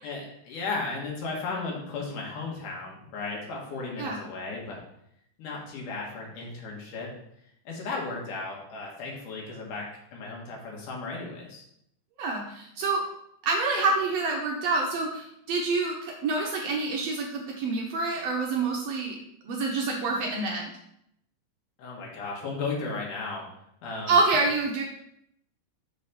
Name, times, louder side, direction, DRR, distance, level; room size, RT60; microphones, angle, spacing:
voice 1, 0.0-4.8 5.4-7.1 7.7-9.9 10.1-11.6 21.8-23.4 23.8-24.2, left 3 dB, 85° left, -2 dB, 2.9 m, -35 dB
voice 2, 12.2-13.0 13.4-19.2 19.4-20.7 24.1-24.8, right 3 dB, 75° right, 0 dB, 1.6 m, -27 dB
6.0 x 3.4 x 5.4 m, 0.76 s
omnidirectional pair, 3.6 m